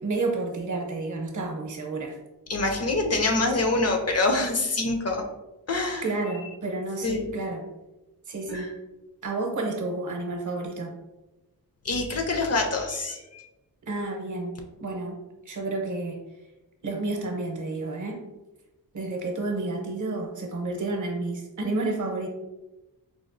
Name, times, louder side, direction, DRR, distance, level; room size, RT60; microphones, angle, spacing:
voice 1, 0.0-2.2 6.0-7.6 8.3-8.7 9.2-10.9 13.8-15.2 15.5-16.2 16.8-18.2 18.9-22.3, right 2 dB, 55° right, 1 dB, 0.7 m, -30 dB
voice 2, 2.5-5.2 5.7-6.0 7.0-7.3 8.5-8.7 11.8-13.4, left 2 dB, 45° left, 3 dB, 0.5 m, -25 dB
4.1 x 2.3 x 2.5 m, 1.0 s
wide cardioid pair, 130°, 37 cm